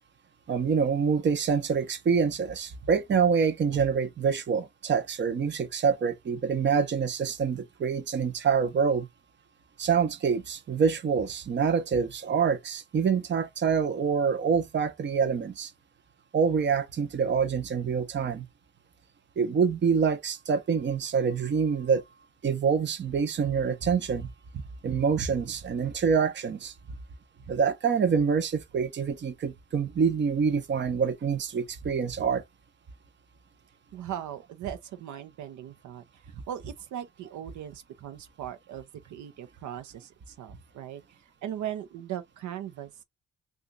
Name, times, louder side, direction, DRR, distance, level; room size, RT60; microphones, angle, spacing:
voice 1, 0.5-9.1 9.8-15.7 16.3-18.4 19.4-22.0 22.4-24.3 24.8-26.7 27.5-32.4, right 6 dB, 35° right, 0.7 m, -26 dB
voice 2, 33.9-43.0, right 10 dB, 75° right, 0.7 m, -39 dB
2.8 x 2.4 x 3.8 m
cardioid pair, 90°, 30 cm